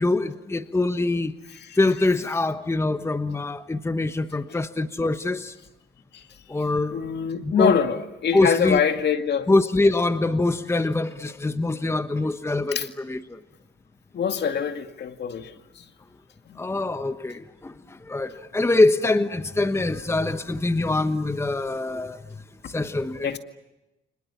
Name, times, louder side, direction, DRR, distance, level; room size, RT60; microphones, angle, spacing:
voice 1, 0.0-1.3 1.8-5.5 6.5-7.0 7.4-7.7 8.3-8.8 9.5-13.4 16.6-22.2 22.7-23.4, left 2 dB, 15° left, 1.2 m, -24 dB
voice 2, 6.9-9.5 12.7-12.9 14.1-15.9 16.5-16.6 23.2-23.4, left 7 dB, 60° left, 2.2 m, -25 dB
29.5 x 25.5 x 7.2 m
cardioid pair, 90°, 20 cm